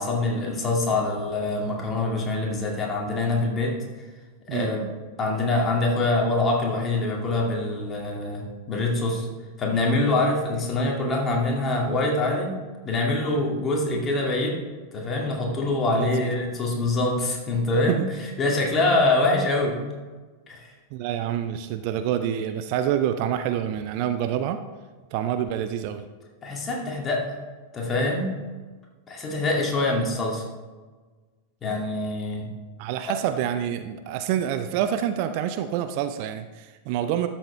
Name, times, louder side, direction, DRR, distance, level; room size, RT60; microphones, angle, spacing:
voice 1, 0.0-3.8 4.5-4.9 5.2-9.3 9.6-12.5 12.8-14.6 14.9-18.0 18.4-19.8 20.5-20.7 26.4-27.2 27.7-28.3 29.1-30.4 31.6-32.5, left 2 dB, 25° left, -1 dB, 2.2 m, -24 dB
voice 2, 15.3-15.7 15.9-16.1 17.9-18.1 20.9-24.6 25.1-26.1 32.8-37.3, right 10 dB, 45° right, 9 dB, 0.5 m, -27 dB
12.5 x 7.1 x 3.3 m, 1.4 s
figure-of-eight pair, 90°, 0 cm